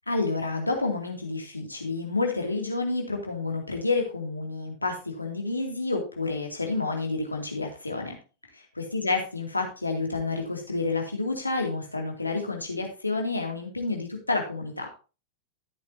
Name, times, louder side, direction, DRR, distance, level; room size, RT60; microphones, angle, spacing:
voice 1, 0.1-8.2 8.5-14.9, left 3 dB, 85° left, 2 dB, 2.5 m, -29 dB
13.5 x 8.2 x 2.8 m, 0.33 s
figure-of-eight pair, 90°, 0 cm